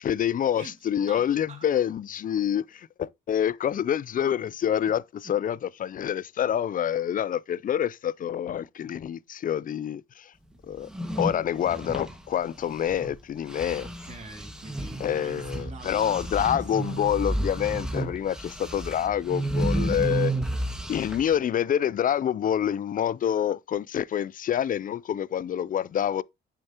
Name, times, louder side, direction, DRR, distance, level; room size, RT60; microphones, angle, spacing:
voice 1, 0.0-10.3 10.7-10.9 11.2-13.9 15.0-20.3 20.9-26.2, left 9 dB, 45° left, 0.4 m, -27 dB
voice 2, 1.1-1.7 3.7-3.8 5.2-5.4 13.8-17.0, right 3 dB, 35° right, 2.4 m, -46 dB
sound 1, 10.8-13.2 13.5-21.4, right 1 dB, 5° right, 1.7 m, -31 dB
8.7 x 6.8 x 2.9 m
cardioid pair, 90°, 20 cm